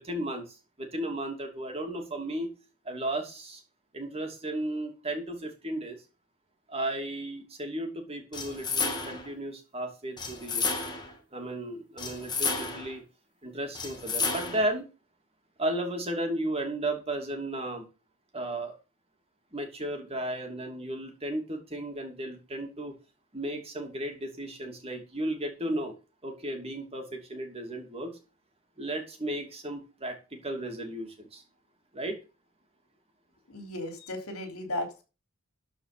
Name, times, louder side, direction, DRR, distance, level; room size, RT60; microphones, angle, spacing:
voice 1, 0.0-2.5 2.8-3.6 3.9-6.0 6.7-10.7 11.3-13.0 13.4-14.9 15.6-17.9 18.3-18.7 19.5-22.9 23.3-26.0 26.2-28.2 28.8-31.4 31.9-32.2, right 1 dB, 25° right, 3 dB, 2.7 m, -34 dB
sound 1, 8.3-9.3 10.2-11.1 12.0-13.0 13.7-14.7, left 4 dB, 20° left, 2.3 m, -31 dB
voice 2, 33.5-35.0, left 1 dB, 75° left, 5 dB, 3.3 m, -35 dB
13.0 x 5.0 x 6.7 m, 0.32 s
head